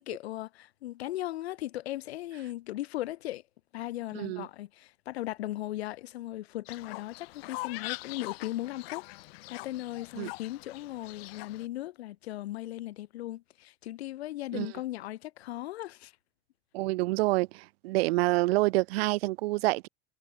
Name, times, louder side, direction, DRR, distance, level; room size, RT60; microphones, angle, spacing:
voice 1, 0.0-3.4 3.7-16.1, left 15 dB, 90° left, 0.7 m, -38 dB
voice 2, 4.1-4.5 10.2-10.3 14.5-14.7 16.7-19.9, right 21 dB, 75° right, 0.6 m, -27 dB
Fowl, 6.7-11.7, left 23 dB, 70° left, 1.8 m, -42 dB
hypercardioid pair, 100°, 31 cm